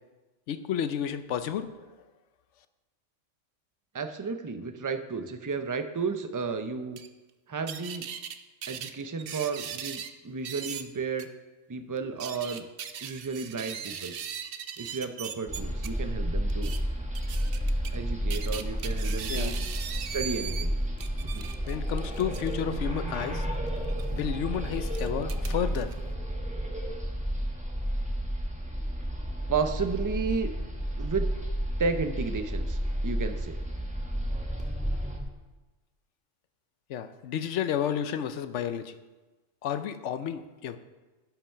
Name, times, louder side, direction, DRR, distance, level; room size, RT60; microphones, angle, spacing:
voice 1, 0.5-1.8 19.3-19.5 21.7-23.5 24.1-25.9 36.9-38.9 39.6-40.8, left 9 dB, 70° left, 11 dB, 0.9 m, -31 dB
voice 2, 3.9-7.0 7.5-8.0 8.7-11.3 11.7-12.6 13.0-14.1 14.8-16.7 17.9-19.5 20.0-20.7 21.2-21.5 25.2-25.3 29.5-30.5 31.0-31.3 31.8-32.8 33.0-33.6, right 5 dB, 30° right, 8 dB, 0.3 m, -32 dB
sound 1, 7.0-7.1 7.7-8.4 8.6-10.1 10.4-10.8 11.2-11.3 12.0-15.9 16.5-16.8 17.1-18.0 18.3-20.7 21.0-22.5 23.8-24.1 24.8-25.9, right 8 dB, 55° right, 0.7 m, -39 dB
sound 2, 15.5-35.2, equal, 5° right, 1.1 m, -31 dB
11.5 x 5.8 x 5.6 m, 1.2 s
omnidirectional pair, 1.3 m